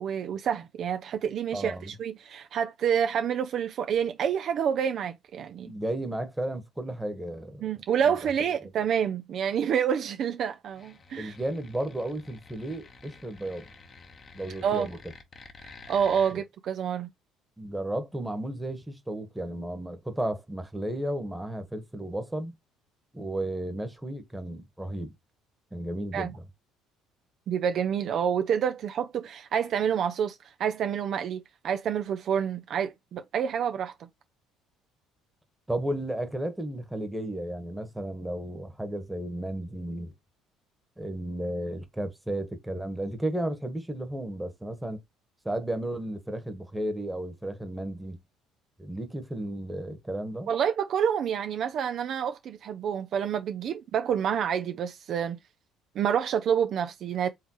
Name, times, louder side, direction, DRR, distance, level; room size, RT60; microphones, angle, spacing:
voice 1, 0.0-5.7 7.6-11.3 14.6-14.9 15.6-17.1 26.1-26.3 27.5-33.9 50.5-55.4 56.0-57.3, right 8 dB, 55° right, 0.5 m, -28 dB
voice 2, 1.5-1.9 5.6-7.7 11.2-13.7 14.3-15.0 16.3-16.4 17.6-22.5 23.1-25.1 25.7-26.4 35.7-40.1 41.0-45.0 45.4-48.2 48.8-50.5, right 1 dB, 10° right, 1.3 m, -33 dB
sound 1, 10.7-16.3, left 4 dB, 40° left, 1.1 m, -50 dB
4.6 x 3.3 x 3.0 m
hypercardioid pair, 60°, 0 cm